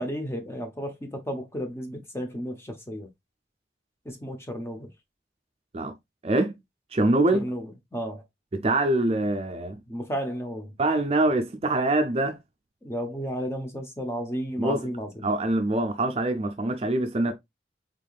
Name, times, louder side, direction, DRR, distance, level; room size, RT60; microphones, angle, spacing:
voice 1, 0.0-3.1 4.0-4.9 7.3-7.7 7.9-8.2 9.9-10.7 12.8-15.3, equal, 15° left, 0.7 m, -33 dB
voice 2, 6.2-6.6 6.9-7.4 8.5-9.8 10.8-12.4 14.6-14.8 15.2-17.3, right 2 dB, 35° right, 0.5 m, -24 dB
3.6 x 3.5 x 2.3 m
head